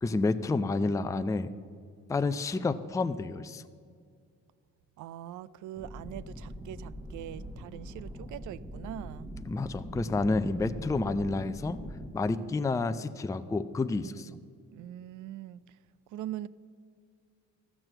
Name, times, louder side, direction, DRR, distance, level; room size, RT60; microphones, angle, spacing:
voice 1, 0.0-1.5 2.1-3.6 9.5-11.8 12.1-14.3, left 3 dB, 10° left, 0.4 m, -29 dB
voice 2, 5.0-9.3 14.0-14.5 14.7-15.8 16.1-16.5, right 12 dB, 75° right, 0.5 m, -42 dB
sound 1, 5.8-12.1, equal, 5° right, 1.2 m, -42 dB
13.5 x 6.1 x 7.7 m
cardioid pair, 90°, 30 cm